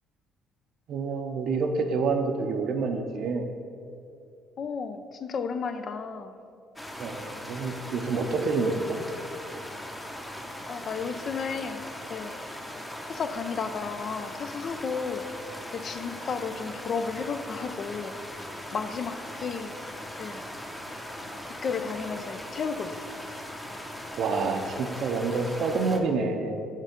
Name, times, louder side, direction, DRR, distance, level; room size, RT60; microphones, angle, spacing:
voice 1, 0.9-3.5 7.0-9.0 24.2-26.6, right 4 dB, 65° right, 6 dB, 0.5 m, -28 dB
voice 2, 4.6-6.3 10.7-11.8 12.1-12.4 13.1-15.2 15.7-18.1 18.7-19.8 20.2-20.4 21.3-23.0, left 5 dB, 50° left, 9 dB, 0.4 m, -33 dB
sound 1, 6.8-26.0, equal, 10° left, 0.8 m, -39 dB
6.4 x 3.7 x 5.1 m, 2.5 s
supercardioid pair, 65°, 0 cm